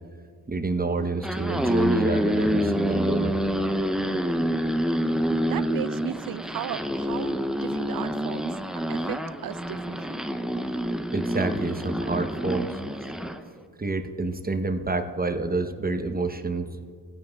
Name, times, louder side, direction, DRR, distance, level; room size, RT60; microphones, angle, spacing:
voice 1, 0.5-3.4 11.1-13.1 13.8-16.7, right 3 dB, 20° right, 7 dB, 0.9 m, -28 dB
sound 1, 1.1-13.4, equal, ahead, 0.6 m, -27 dB
voice 2, 5.2-10.2, right 12 dB, 50° right, 18 dB, 0.4 m, -36 dB
16.5 x 9.4 x 2.3 m, 2.2 s
supercardioid pair, 40°, 43 cm